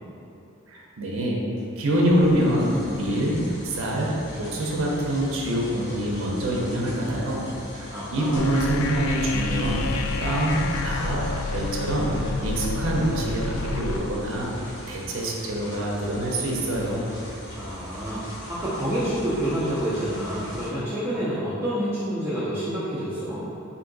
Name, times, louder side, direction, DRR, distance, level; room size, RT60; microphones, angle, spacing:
voice 1, 0.7-1.4 1.8-4.1 4.4-7.5 7.7-9.8 10.2-10.6 10.8-11.2 11.5-14.5 14.9-17.1, right 1 dB, 60° right, -3 dB, 0.6 m, -25 dB
sound 1, 1.5-20.7, equal, 55° left, 0.9 m, -40 dB
voice 2, 7.9-8.4 17.6-18.2 18.5-23.4, equal, 10° right, -12 dB, 0.5 m, -28 dB
sound 2, 8.4-14.0, left 3 dB, 75° left, 0.3 m, -29 dB
3.6 x 2.6 x 3.9 m, 2.7 s
head